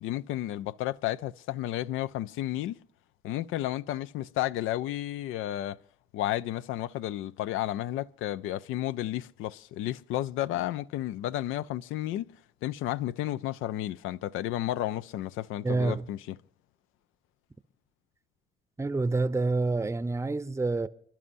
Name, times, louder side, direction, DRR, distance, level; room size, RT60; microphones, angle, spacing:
voice 1, 0.0-2.8 3.2-5.8 6.1-12.3 12.6-16.4, left 14 dB, 90° left, 0.4 m, -32 dB
voice 2, 15.6-16.1 18.8-20.9, right 3 dB, 15° right, 0.6 m, -27 dB
27.5 x 11.5 x 2.6 m
cardioid pair, 65°, 20 cm